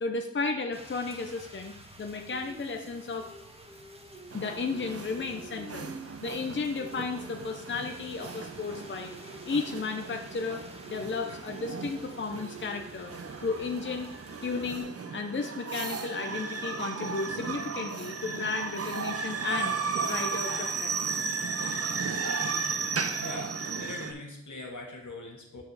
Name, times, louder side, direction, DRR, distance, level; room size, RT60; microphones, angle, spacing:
voice 1, 0.0-3.3 4.3-5.9 6.2-9.1 9.4-13.1 13.4-14.1 14.4-19.7 20.0-21.2, left 4 dB, 40° left, 4 dB, 0.6 m, -34 dB
Rain, 0.7-14.8, right 1 dB, 20° right, 1.2 m, -48 dB
sound 1, 4.3-24.1, right 5 dB, 55° right, 0.6 m, -35 dB
voice 2, 23.2-25.6, left 2 dB, 80° left, 1 dB, 1.6 m, -42 dB
7.3 x 3.1 x 6.2 m, 0.78 s
wide cardioid pair, 55°, 30 cm